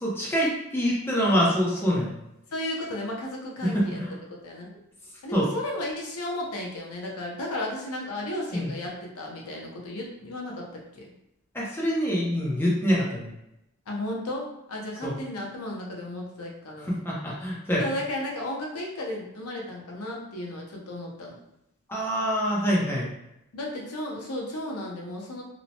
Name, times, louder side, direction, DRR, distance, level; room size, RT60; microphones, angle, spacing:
voice 1, 0.0-2.1 3.7-4.1 5.3-5.5 8.5-8.7 11.5-13.3 15.0-15.2 16.9-17.8 21.9-23.1, equal, 10° left, -5 dB, 0.5 m, -25 dB
voice 2, 2.5-4.0 4.4-4.7 5.2-11.1 13.9-16.9 17.8-21.4 23.5-25.4, left 1 dB, 90° left, -1 dB, 0.7 m, -34 dB
3.0 x 2.0 x 2.6 m, 0.84 s
head